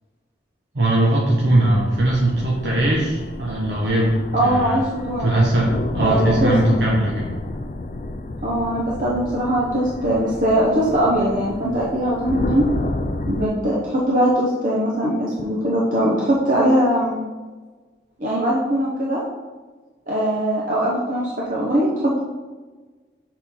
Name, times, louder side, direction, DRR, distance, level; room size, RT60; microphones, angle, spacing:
voice 1, 0.7-4.8 5.2-7.3, right 1 dB, 75° right, -4 dB, 1.0 m, -20 dB
sound 1, 1.4-13.5, left 2 dB, 40° left, 0.4 m, -31 dB
voice 2, 4.3-5.3 6.0-6.5 8.4-12.6 13.3-17.2 18.2-19.2 20.1-22.2, right 1 dB, 45° right, -5 dB, 1.0 m, -21 dB
6.7 x 3.9 x 4.2 m, 1.3 s
head